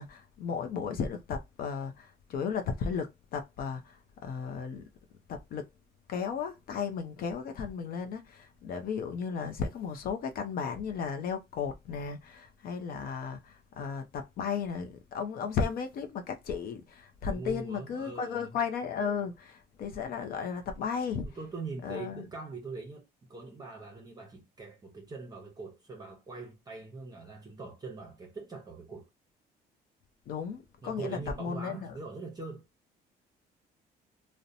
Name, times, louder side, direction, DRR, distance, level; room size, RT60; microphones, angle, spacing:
voice 1, 0.0-4.8 5.3-5.7 6.1-21.3 21.8-22.3 30.3-32.0, left 6 dB, 60° left, 0.5 m, -35 dB
voice 2, 17.3-18.5 21.2-29.1 30.8-32.6, right 3 dB, 25° right, 0.7 m, -42 dB
2.7 x 2.1 x 2.5 m
cardioid pair, 110°, 17 cm